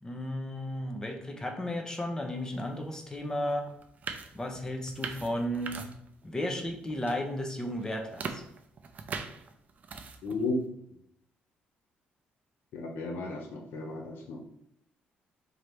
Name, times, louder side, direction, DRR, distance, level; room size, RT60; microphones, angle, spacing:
voice 1, 0.0-3.7 4.3-5.8 6.2-8.4, left 1 dB, 20° left, 3 dB, 0.7 m, -34 dB
sound 1, 3.1-3.2 3.7-6.3 6.6-7.2 7.6-10.5, right 5 dB, 45° right, 0.5 m, -41 dB
voice 2, 10.2-10.6 12.7-14.4, left 3 dB, 75° left, 1 dB, 0.8 m, -34 dB
3.9 x 3.0 x 3.3 m, 0.74 s
cardioid pair, 100°, 4 cm